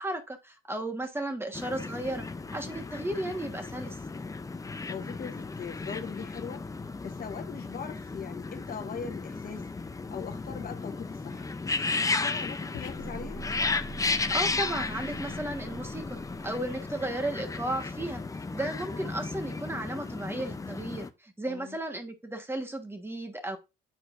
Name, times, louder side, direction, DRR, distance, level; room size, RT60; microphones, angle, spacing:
voice 1, 0.0-2.3 2.5-4.0 14.3-18.2 18.5-23.6, right 1 dB, 10° right, 1.4 m, -34 dB
sound 1, 1.5-21.1, left 3 dB, 15° left, 0.5 m, -34 dB
voice 2, 4.9-6.6 7.0-9.7 10.1-11.5 12.1-13.5 21.4-21.8, left 6 dB, 45° left, 1.0 m, -40 dB
sound 2, 12.7-17.4, right 2 dB, 80° left, 0.8 m, -45 dB
8.4 x 4.4 x 2.5 m
cardioid pair, 90°, 20 cm